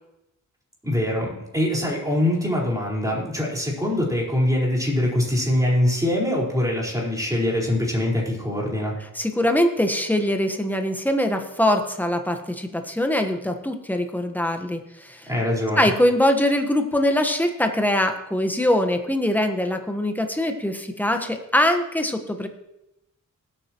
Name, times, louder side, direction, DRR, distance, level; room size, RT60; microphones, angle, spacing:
voice 1, 0.8-9.0 15.3-15.9, left 1 dB, 10° right, -4 dB, 4.6 m, -23 dB
voice 2, 9.1-15.3 15.8-22.5, left 1 dB, 5° left, 5 dB, 1.3 m, -22 dB
19.5 x 8.9 x 3.1 m, 0.86 s
wide cardioid pair, 80°, 32 cm